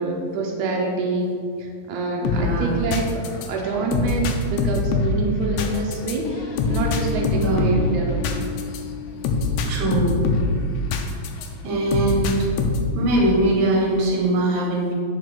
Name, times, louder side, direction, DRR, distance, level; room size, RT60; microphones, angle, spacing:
voice 1, 0.0-1.3 1.6-8.2, right 3 dB, 85° right, 0 dB, 2.2 m, -26 dB
sound 1, 2.2-11.5 11.9-13.0, left 3 dB, 85° left, 2.0 m, -24 dB
voice 2, 2.3-2.8 7.4-7.7 9.7-10.2 11.6-12.7 12.9-14.9, right 1 dB, 60° right, -3 dB, 2.3 m, -22 dB
5.2 x 5.0 x 6.1 m, 2.2 s
omnidirectional pair, 3.3 m